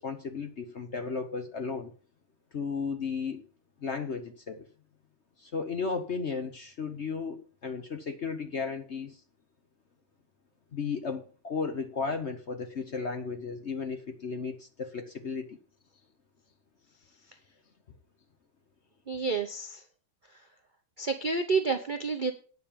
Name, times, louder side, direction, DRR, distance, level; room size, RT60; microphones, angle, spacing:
voice 1, 0.0-1.9 2.5-3.4 3.8-4.7 5.4-9.2 10.7-15.6, left 5 dB, 50° left, 0.9 m, -34 dB
voice 2, 19.1-19.8 20.3-20.4 21.0-22.3, right 4 dB, 70° right, 0.4 m, -29 dB
9.6 x 6.3 x 7.0 m
omnidirectional pair, 2.2 m